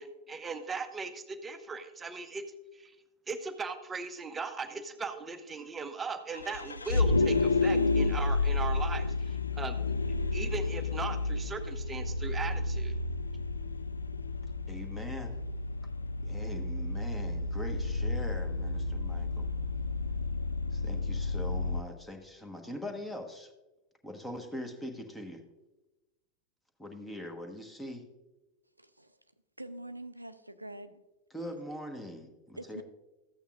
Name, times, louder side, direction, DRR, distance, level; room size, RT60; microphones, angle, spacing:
voice 1, 0.0-2.4 2.7-2.9 3.3-9.9 10.3-12.9, right 4 dB, 15° right, 9 dB, 0.8 m, -38 dB
Vehicle, 6.3-21.8, left 3 dB, 80° left, 0.3 m, -31 dB
voice 2, 14.7-15.4 16.2-19.5 20.7-23.5 24.0-25.4 26.8-28.1 31.3-32.8, left 1 dB, 5° left, 4 dB, 1.2 m, -42 dB
voice 3, 28.8-29.2 29.6-31.0 32.6-32.8, right 1 dB, 85° right, 11 dB, 0.4 m, -44 dB
14.0 x 8.6 x 2.5 m, 1.1 s
figure-of-eight pair, 90°, 0 cm